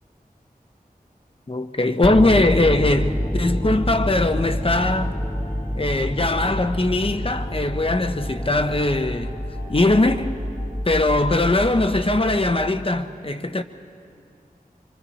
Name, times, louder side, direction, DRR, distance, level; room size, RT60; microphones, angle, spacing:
voice 1, 1.5-5.1 5.7-9.4 9.7-10.4 10.8-13.6, left 2 dB, 35° left, 1.0 m, -21 dB
sound 1, 1.8-12.8, left 1 dB, 60° left, 7.2 m, -45 dB
sound 2, 2.0-13.0, equal, 5° left, 0.7 m, -28 dB
25.5 x 25.0 x 4.3 m
wide cardioid pair, 50°, 16 cm